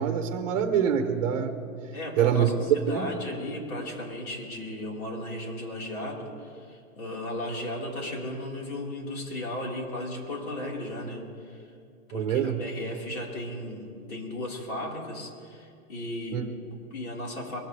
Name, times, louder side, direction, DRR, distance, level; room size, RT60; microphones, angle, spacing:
voice 1, 0.0-1.5 2.2-2.5 2.9-3.1 12.1-12.6 16.3-16.5, right 8 dB, 25° right, 7 dB, 1.1 m, -25 dB
voice 2, 1.9-11.7 12.1-17.6, left 1 dB, 75° left, -2 dB, 4.6 m, -35 dB
23.0 x 15.5 x 3.4 m, 2.3 s
hypercardioid pair, 180°, 43 cm